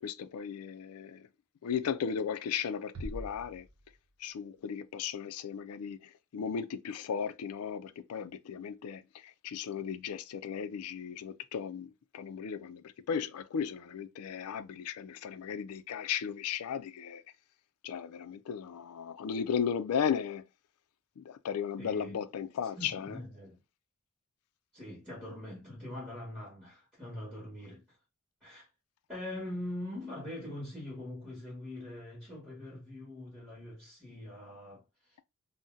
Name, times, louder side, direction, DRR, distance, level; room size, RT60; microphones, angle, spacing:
voice 1, 0.0-1.3 1.6-3.6 4.2-6.0 6.3-17.2 17.8-20.4 21.2-23.2, left 7 dB, 85° left, 0.4 m, -36 dB
sound 1, 2.9-4.6, equal, 65° right, 0.6 m, -44 dB
voice 2, 21.8-22.2 22.8-23.6 24.7-28.0 28.4-28.7 29.1-35.2, left 1 dB, 5° right, 1.2 m, -43 dB
2.6 x 2.1 x 3.7 m
head